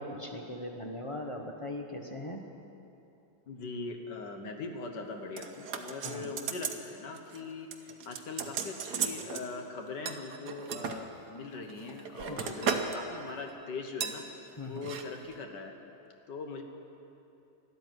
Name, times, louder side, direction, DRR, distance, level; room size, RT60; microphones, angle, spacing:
voice 1, 0.0-2.4 6.0-6.3 12.3-12.6 14.6-14.9, left 1 dB, 25° left, 2 dB, 0.7 m, -40 dB
voice 2, 3.5-15.8 16.3-16.6, left 3 dB, 60° left, 4 dB, 1.8 m, -41 dB
sound 1, 5.4-6.8 7.1-7.4 7.7-9.5 10.1-11.0 11.6-13.0 13.3-13.5 14.0-14.2 14.8-15.0 15.3-15.4, right 7 dB, 60° right, 1.4 m, -35 dB
13.0 x 12.0 x 9.3 m, 2.8 s
omnidirectional pair, 2.2 m